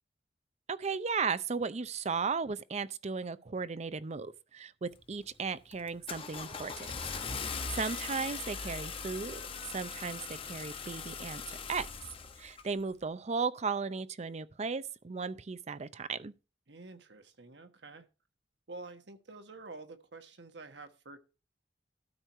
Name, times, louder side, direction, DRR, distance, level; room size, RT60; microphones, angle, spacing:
voice 1, 0.7-6.9 7.4-9.4 9.7-11.4 11.7-11.9 12.4-16.3, right 5 dB, 40° right, 0.5 m, -35 dB
Car / Engine starting, 4.9-5.3 5.7-12.7, left 5 dB, 30° left, 1.0 m, -40 dB
voice 2, 16.7-18.1 18.7-21.2, right 3 dB, 75° right, 1.3 m, -48 dB
12.5 x 4.6 x 5.5 m
head